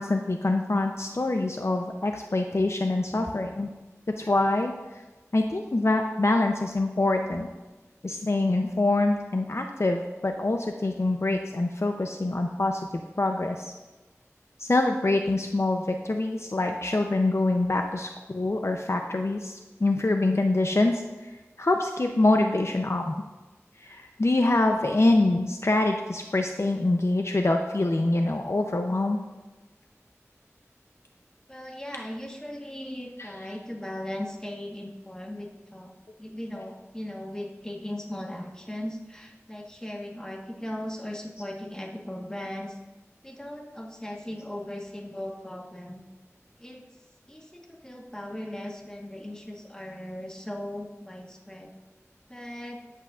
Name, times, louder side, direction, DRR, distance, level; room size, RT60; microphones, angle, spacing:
voice 1, 0.0-3.7 4.2-4.7 5.3-7.5 8.0-12.8 13.2-13.6 14.6-19.5 19.8-21.0 21.6-23.1 23.9-29.2, left 2 dB, 55° left, 4 dB, 0.6 m, -25 dB
voice 2, 31.5-35.9 36.2-42.8 43.2-46.0 46.6-46.8 47.3-51.7 52.3-52.8, left 1 dB, 15° left, 0 dB, 1.3 m, -38 dB
13.5 x 8.2 x 2.4 m, 1.1 s
wide cardioid pair, 50°, 5 cm